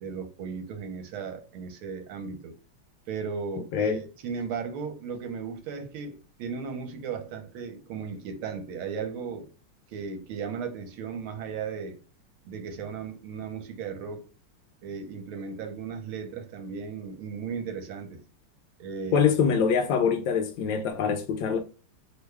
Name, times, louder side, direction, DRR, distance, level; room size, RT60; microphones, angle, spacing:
voice 1, 0.0-2.6 3.1-9.5 9.9-12.0 12.4-14.3 14.8-18.2 18.8-19.3, right 5 dB, 75° right, 1.5 m, -36 dB
voice 2, 19.1-21.6, left 6 dB, 75° left, 1.2 m, -24 dB
3.5 x 2.2 x 3.1 m
omnidirectional pair, 2.4 m